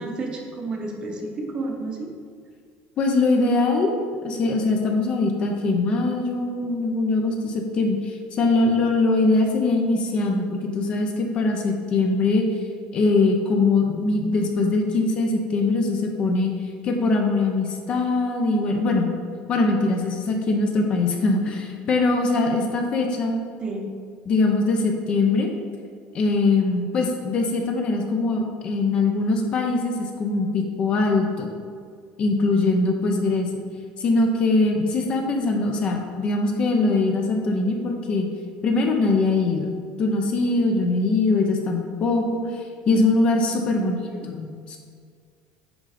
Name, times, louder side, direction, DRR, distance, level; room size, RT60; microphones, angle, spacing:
voice 1, 0.0-2.1 23.6-23.9 43.7-44.2, right 3 dB, 25° right, 1 dB, 0.9 m, -31 dB
voice 2, 3.0-3.9 4.2-12.4 12.9-16.5 16.8-19.1 19.5-23.4 24.3-25.5 26.1-31.5 32.2-33.5 34.0-38.3 38.6-39.7 40.0-44.0 44.3-44.8, left 3 dB, 30° left, 2 dB, 0.7 m, -22 dB
9.7 x 3.8 x 5.0 m, 2.1 s
cardioid pair, 180°, 4 cm